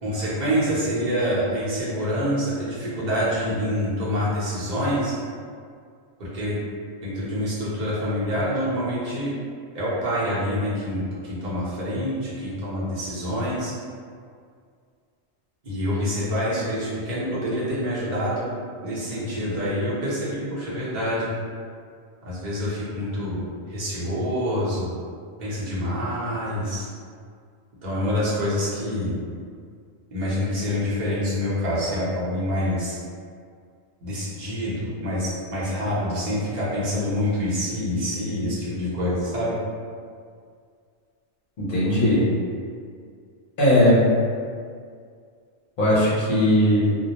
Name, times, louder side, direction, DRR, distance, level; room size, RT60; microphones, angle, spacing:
voice 1, 0.0-5.1 6.2-6.6 7.0-9.3 9.7-13.7 15.6-18.4 18.8-21.3 22.2-24.9 25.4-26.9 27.8-29.1 30.1-33.0 34.0-39.5, equal, 45° right, -9 dB, 0.8 m, -26 dB
voice 2, 41.6-42.3 43.6-44.1 45.8-47.0, equal, 55° left, -9 dB, 0.7 m, -18 dB
2.2 x 2.0 x 2.8 m, 2.1 s
omnidirectional pair, 1.2 m